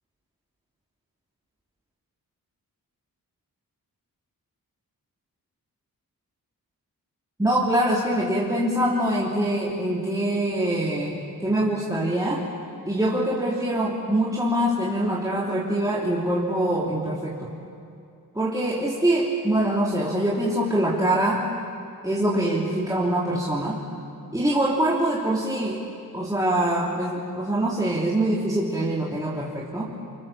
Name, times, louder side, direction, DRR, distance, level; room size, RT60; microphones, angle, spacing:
voice 1, 7.4-12.4 12.9-17.5 18.3-21.5 22.0-23.8 24.3-25.8 26.1-29.9, right 1 dB, 10° right, -5 dB, 3.0 m, -24 dB
25.5 x 24.5 x 7.3 m, 2.5 s
cardioid pair, 70°, 36 cm